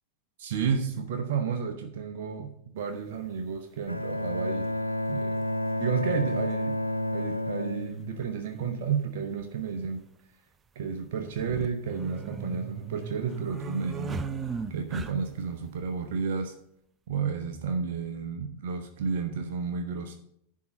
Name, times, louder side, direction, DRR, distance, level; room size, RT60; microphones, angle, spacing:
voice 1, 0.4-4.7 5.1-5.4 5.8-6.8 7.1-10.0 10.7-14.1 14.7-16.5 17.1-20.1, right 6 dB, 55° right, 6 dB, 0.9 m, -31 dB
sound 1, 2.9-3.0 4.5-4.6 6.0-6.1 6.3-6.4 8.2-8.4 8.6-8.7 9.4-9.9 11.3-15.5, right 5 dB, 20° right, 0.6 m, -36 dB
Bowed string instrument, 3.9-8.9, left 1 dB, 85° left, 0.4 m, -31 dB
11.0 x 3.8 x 7.5 m, 0.73 s
figure-of-eight pair, 90°, 0 cm